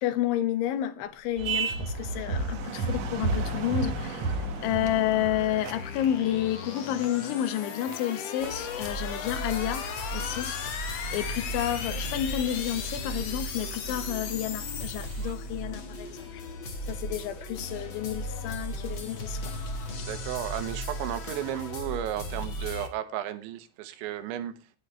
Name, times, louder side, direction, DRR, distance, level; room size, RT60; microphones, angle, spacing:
voice 1, 0.0-9.8 10.1-16.4 16.9-19.5, left 11 dB, 85° left, 3.6 m, -30 dB
sound 1, 1.2-15.7, left 7 dB, 65° left, 1.6 m, -39 dB
sound 2, 1.4-6.4 6.8-7.3 7.6-7.9 8.4-8.5 8.8-8.9 10.2-10.7 11.4-11.5 11.7-11.9 12.8-12.9 13.1-13.2 13.6-13.7 14.7-14.8 15.0-15.3, right 3 dB, 55° right, 1.8 m, -32 dB
sound 3, 8.4-22.9, equal, 45° left, 1.7 m, -36 dB
voice 2, 20.0-24.5, right 11 dB, 80° right, 3.5 m, -34 dB
18.5 x 8.3 x 3.3 m
omnidirectional pair, 5.3 m